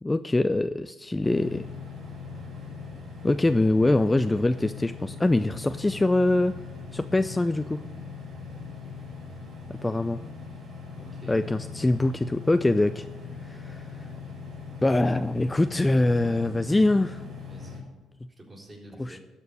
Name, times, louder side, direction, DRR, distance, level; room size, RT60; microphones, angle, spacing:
voice 1, 0.0-1.6 3.2-6.5 6.9-7.8 9.7-10.2 11.3-13.1 13.4-13.9 14.8-17.2 19.0-19.2, left 2 dB, 15° left, 11 dB, 0.4 m, -24 dB
sound 1, 1.2-17.8, left 4 dB, 60° right, 3.2 m, -40 dB
voice 2, 11.0-11.4 16.2-16.6 17.5-17.8 18.4-19.2, right 2 dB, 25° right, -2 dB, 3.8 m, -47 dB
12.5 x 4.5 x 8.3 m, 1.2 s
supercardioid pair, 60°, 0 cm